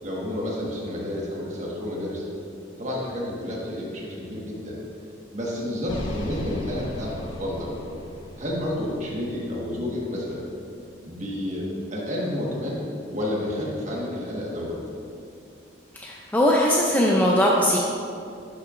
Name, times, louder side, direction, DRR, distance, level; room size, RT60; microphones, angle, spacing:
voice 1, 0.0-2.2 2.8-4.8 5.3-7.8 8.4-10.4 11.0-12.8 13.1-14.8, left 1 dB, 40° right, -4 dB, 1.4 m, -30 dB
sound 1, 5.9-10.1, equal, 75° left, 1.2 m, -37 dB
voice 2, 16.0-17.8, equal, 10° left, -3 dB, 0.4 m, -20 dB
11.5 x 5.7 x 2.5 m, 2.4 s
head